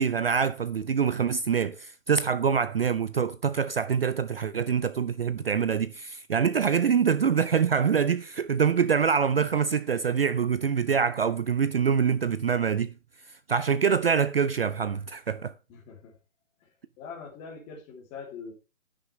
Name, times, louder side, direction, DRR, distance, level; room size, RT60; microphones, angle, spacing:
voice 1, 0.0-12.9 13.3-15.5, right 6 dB, 45° right, 0.5 m, -25 dB
voice 2, 15.7-16.2 16.6-16.7 17.0-18.5, left 5 dB, 15° left, 2.7 m, -43 dB
11.0 x 10.0 x 3.2 m
hypercardioid pair, 155°, 40 cm